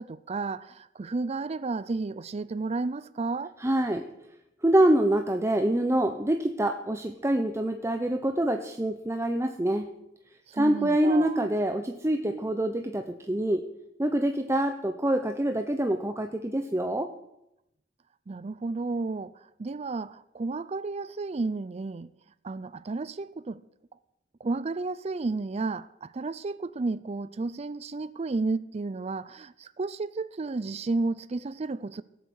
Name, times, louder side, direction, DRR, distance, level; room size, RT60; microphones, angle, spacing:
voice 1, 0.0-3.5 10.5-11.5 18.3-22.1 22.4-23.6 24.4-32.0, right 3 dB, 35° right, 0.4 m, -32 dB
voice 2, 3.6-4.1 4.6-9.9 10.5-13.6 14.0-17.1, right 1 dB, 15° right, 0.8 m, -25 dB
17.5 x 8.2 x 8.0 m
head